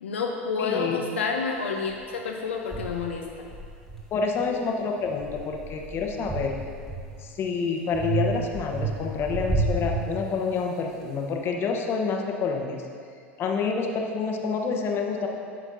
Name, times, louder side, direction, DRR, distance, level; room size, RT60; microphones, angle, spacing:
voice 1, 0.0-3.5, left 5 dB, 75° left, 1 dB, 0.6 m, -29 dB
voice 2, 0.6-1.0 4.1-6.5 7.2-12.8 13.4-15.3, left 5 dB, 35° left, 2 dB, 1.0 m, -28 dB
sound 1, 1.9-2.0 2.7-4.6 5.0-7.4 7.9-10.7, right 3 dB, ahead, 1.5 m, -31 dB
11.5 x 7.1 x 2.7 m, 2.3 s
figure-of-eight pair, 80°, 7 cm